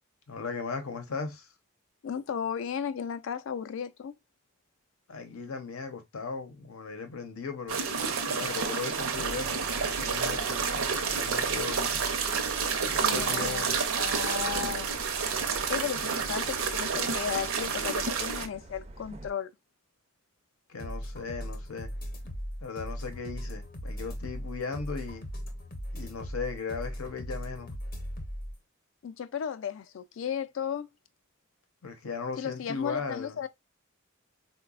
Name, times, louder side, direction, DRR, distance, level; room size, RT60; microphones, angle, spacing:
voice 1, 0.3-1.5 5.1-7.8 8.3-12.0 12.8-13.8 15.9-16.0 20.7-21.9 22.6-25.3 25.9-27.8 31.8-33.4, left 4 dB, 90° left, 0.7 m, -37 dB
voice 2, 2.0-4.1 13.0-14.9 15.7-19.5 29.0-30.9 32.4-33.5, left 7 dB, 65° left, 0.3 m, -34 dB
sound 1, 7.7-18.5, right 6 dB, 75° right, 0.6 m, -29 dB
sound 2, 9.1-19.3, right 1 dB, 30° right, 0.4 m, -45 dB
sound 3, 20.8-28.5, equal, 45° left, 0.7 m, -38 dB
3.9 x 2.2 x 2.3 m
head